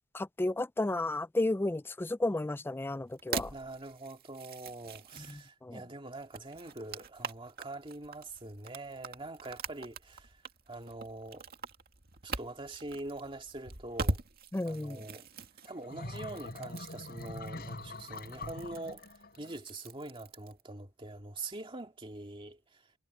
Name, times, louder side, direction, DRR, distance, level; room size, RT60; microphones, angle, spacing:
voice 1, 0.1-3.5 5.6-5.8 14.5-15.0, left 2 dB, 10° left, 0.3 m, -32 dB
sound 1, 3.1-5.5 6.1-20.6, right 3 dB, 50° right, 2.2 m, -42 dB
voice 2, 3.5-10.4 10.7-11.5 12.2-14.2 14.6-15.3 15.6-19.1 19.4-22.9, right 2 dB, 25° right, 2.1 m, -44 dB
sound 2, 15.7-19.6, left 2 dB, 50° left, 6.1 m, -44 dB
head